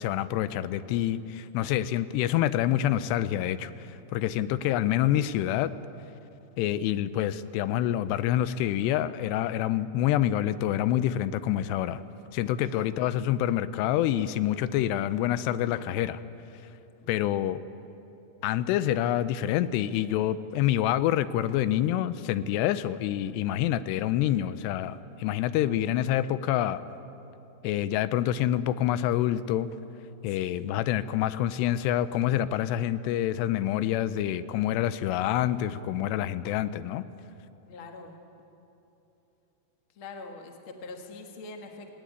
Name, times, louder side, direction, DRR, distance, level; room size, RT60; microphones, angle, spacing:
voice 1, 0.0-5.7 6.6-12.0 12.3-16.2 17.1-17.6 18.4-26.8 27.6-29.7 30.2-37.0, left 12 dB, 90° left, 14 dB, 2.8 m, -27 dB
voice 2, 6.6-7.0 12.6-13.0 30.4-30.7 37.7-38.2 40.0-41.9, left 3 dB, 50° left, 3 dB, 1.7 m, -44 dB
18.5 x 17.5 x 9.4 m, 2.9 s
omnidirectional pair, 4.7 m